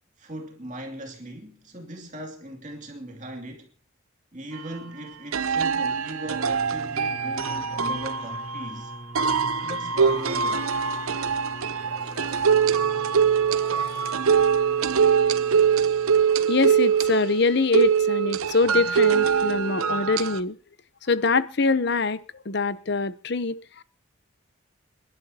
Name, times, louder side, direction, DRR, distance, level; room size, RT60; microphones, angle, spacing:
voice 1, 0.2-3.7 4.3-8.9 9.6-10.7, right 1 dB, 35° right, 2.6 m, -38 dB
sound 1, 4.5-4.6 5.3-20.4, right 6 dB, 85° right, 0.8 m, -23 dB
sound 2, 6.3-16.4 17.2-17.3, right 2 dB, 20° right, 1.3 m, -44 dB
sound 3, 10.1-15.6, left 3 dB, 30° left, 3.0 m, -44 dB
voice 2, 16.3-20.6 21.0-22.2 22.4-23.8, left 3 dB, 55° left, 0.8 m, -24 dB
28.0 x 11.5 x 2.9 m
head